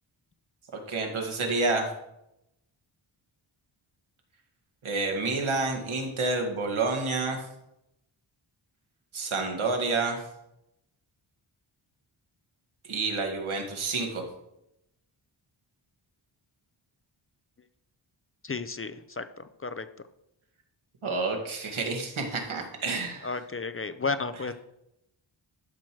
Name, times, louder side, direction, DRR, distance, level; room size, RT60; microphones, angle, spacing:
voice 1, 0.9-1.9 4.8-7.4 9.1-10.2 12.9-14.2 21.0-23.4 24.3-24.4, right 3 dB, 90° right, 2 dB, 2.0 m, -29 dB
voice 2, 18.4-19.3 19.6-19.8 23.2-24.5, left 4 dB, 30° left, 11 dB, 0.5 m, -32 dB
12.0 x 6.0 x 4.6 m, 0.84 s
wide cardioid pair, 115°, 47 cm